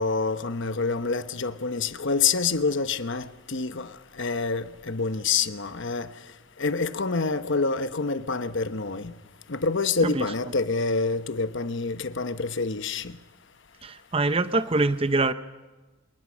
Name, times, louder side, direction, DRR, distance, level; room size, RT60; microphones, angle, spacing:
voice 1, 0.0-3.9 4.2-6.1 6.6-9.1 9.5-13.1, left 4 dB, 60° left, 1.1 m, -27 dB
voice 2, 13.8-15.3, right 3 dB, 25° right, 0.7 m, -24 dB
27.5 x 20.0 x 6.3 m
head